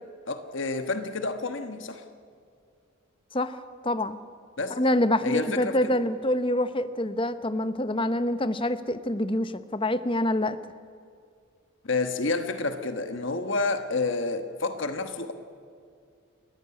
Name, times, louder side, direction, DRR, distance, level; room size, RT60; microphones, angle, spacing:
voice 1, 0.3-2.0 4.6-4.8 5.2-5.9 11.8-15.3, left 3 dB, 60° left, 1.3 m, -29 dB
voice 2, 3.8-4.2 4.8-10.6, left 1 dB, 25° left, 0.9 m, -26 dB
30.0 x 14.5 x 9.7 m
head